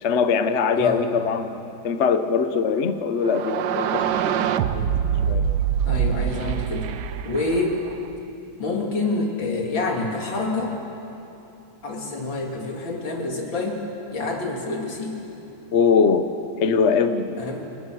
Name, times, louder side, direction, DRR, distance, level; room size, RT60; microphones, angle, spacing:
voice 1, 0.0-4.9 5.3-5.5 15.7-16.3 16.6-17.4, left 5 dB, 50° left, 9 dB, 0.8 m, -22 dB
sound 1, 3.2-8.1, right 9 dB, 70° right, 1.2 m, -24 dB
voice 2, 5.9-6.9 7.2-7.8 8.6-10.7 11.8-13.8 14.1-15.2 17.4-17.6, left 2 dB, 70° left, 0 dB, 3.4 m, -27 dB
29.0 x 18.5 x 6.3 m, 2.8 s
omnidirectional pair, 2.2 m